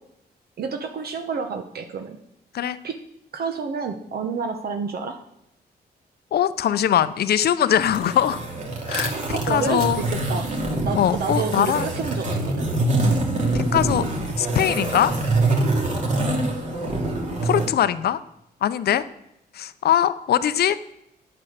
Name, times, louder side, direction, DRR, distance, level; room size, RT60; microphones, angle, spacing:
voice 1, 0.6-2.2 2.8-3.0 3.3-5.2 9.3-10.5 10.8-12.7 13.0-13.2, right 5 dB, 65° right, 5 dB, 1.0 m, -29 dB
voice 2, 6.3-8.4 8.9-10.0 10.9-11.8 13.7-14.0 14.4-15.1 17.4-18.2 18.6-19.0 19.5-20.8, left 10 dB, 65° left, 13 dB, 0.6 m, -21 dB
sound 1, 7.8-17.7, right 2 dB, 45° right, 2.7 m, -25 dB
8.8 x 8.7 x 6.5 m, 0.83 s
cardioid pair, 95°, 17 cm